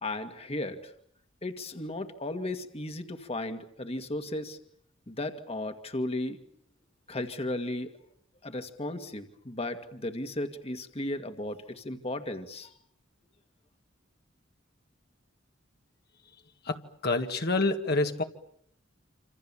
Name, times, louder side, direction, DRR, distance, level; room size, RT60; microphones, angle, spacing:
voice 1, 0.0-0.9 1.4-4.6 5.1-6.4 7.1-7.9 8.4-12.7, left 1 dB, 30° left, 7 dB, 2.0 m, -35 dB
voice 2, 16.7-18.2, left 2 dB, 55° left, 4 dB, 2.0 m, -27 dB
28.0 x 27.0 x 7.3 m, 0.68 s
head